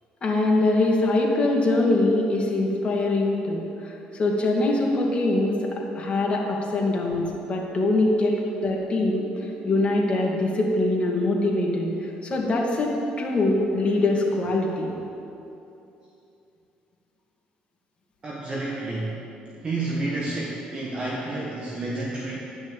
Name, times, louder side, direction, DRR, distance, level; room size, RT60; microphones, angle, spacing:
voice 1, 0.2-5.7 5.9-14.9, left 2 dB, 40° left, -1 dB, 2.4 m, -23 dB
voice 2, 18.2-19.2 19.6-22.4, right 2 dB, 35° right, -4 dB, 1.7 m, -30 dB
11.0 x 6.2 x 8.8 m, 2.8 s
cardioid pair, 85°, 3 cm